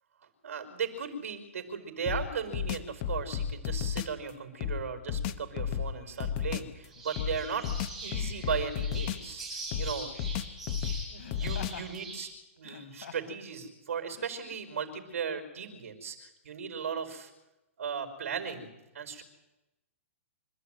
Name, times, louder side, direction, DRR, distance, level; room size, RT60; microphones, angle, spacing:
voice 1, 0.4-7.7 8.0-9.4 9.8-10.5 11.0-12.3 12.6-17.3 17.8-19.2, right 6 dB, 75° right, 8 dB, 5.3 m, -37 dB
sound 1, 2.1-4.2 4.6-6.7 7.2-9.4 9.7-12.0, left 8 dB, 30° left, 1.0 m, -33 dB
sound 2, 6.9-12.2, right 2 dB, 5° right, 7.7 m, -43 dB
Laughter, 7.0-7.1 8.4-8.8 11.2-11.9 12.6-13.4 14.1-14.3, left 8 dB, 75° left, 3.2 m, -46 dB
26.5 x 13.5 x 9.3 m, 0.99 s
hypercardioid pair, 170°, 7 cm